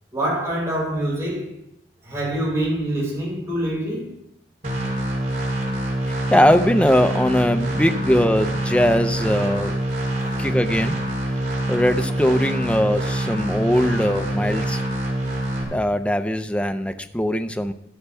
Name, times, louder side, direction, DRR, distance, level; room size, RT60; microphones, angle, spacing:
voice 1, 0.1-1.5 2.0-4.1 10.1-10.5, right 1 dB, 15° right, -5 dB, 5.5 m, -25 dB
sound 1, 4.6-15.6, right 1 dB, 50° right, 3.3 m, -25 dB
voice 2, 6.1-9.8 10.4-11.0 11.3-11.4 11.7-14.8 15.6-17.7, equal, 5° left, 9 dB, 0.6 m, -20 dB
12.0 x 11.0 x 3.5 m, 0.78 s
head